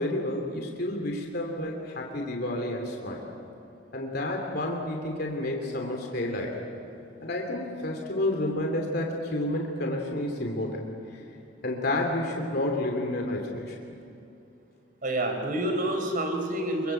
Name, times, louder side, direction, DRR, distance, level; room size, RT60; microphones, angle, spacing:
voice 1, 0.0-3.2 3.9-6.6 7.2-10.8 11.6-13.8, left 1 dB, 55° left, 1 dB, 3.0 m, -30 dB
voice 2, 15.0-16.9, right 1 dB, 45° right, 4 dB, 4.3 m, -28 dB
26.5 x 24.0 x 7.9 m, 2.6 s
head